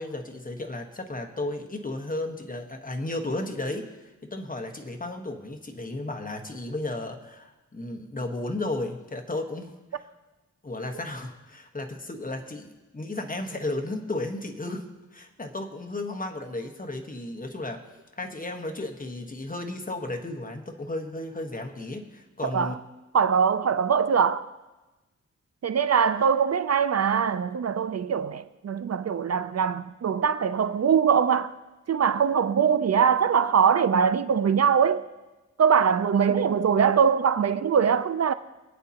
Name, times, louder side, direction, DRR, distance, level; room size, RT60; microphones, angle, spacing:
voice 1, 0.0-10.1 10.6-17.8 18.1-22.7, left 2 dB, 30° left, 1.2 m, -34 dB
voice 2, 23.1-24.5 25.6-31.5 31.9-35.1 35.6-38.3, right 7 dB, 60° right, 0.5 m, -22 dB
23.5 x 8.9 x 2.9 m
wide cardioid pair, 120°, 30 cm